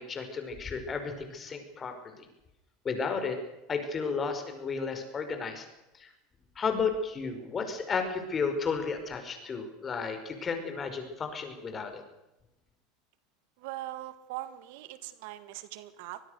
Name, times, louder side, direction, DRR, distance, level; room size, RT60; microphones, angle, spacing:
voice 1, 0.0-2.3 2.8-3.4 3.7-5.7 5.9-6.1 6.6-12.0, left 5 dB, 30° left, 7 dB, 5.3 m, -33 dB
voice 2, 13.6-16.2, right 15 dB, 70° right, 12 dB, 1.9 m, -41 dB
24.5 x 20.0 x 6.6 m, 0.95 s
hypercardioid pair, 95°, 0 cm